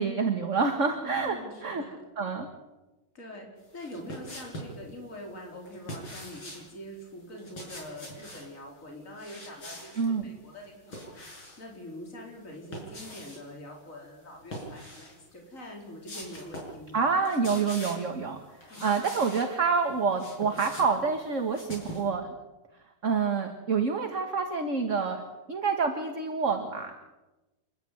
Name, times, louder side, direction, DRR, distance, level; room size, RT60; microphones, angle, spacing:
voice 1, 0.0-1.4 1.6-1.8 2.2-2.5 10.0-10.3 16.9-18.4 18.8-22.3 23.0-25.2 25.5-26.9, right 5 dB, 40° right, 5 dB, 2.0 m, -27 dB
voice 2, 1.0-2.0 3.1-3.5 3.7-11.3 11.6-17.1 18.7-19.0, left 1 dB, 35° left, 0 dB, 5.0 m, -44 dB
sound 1, 3.7-4.8 5.6-6.7 7.3-8.5 9.1-10.1 10.5-11.7 12.5-13.4 14.4-15.2 15.6-15.7 16.0-16.8 17.1-18.1 18.6-19.5 19.9-22.1, equal, 70° left, 7.1 m, -43 dB
29.5 x 12.0 x 9.6 m, 1.1 s
omnidirectional pair, 2.2 m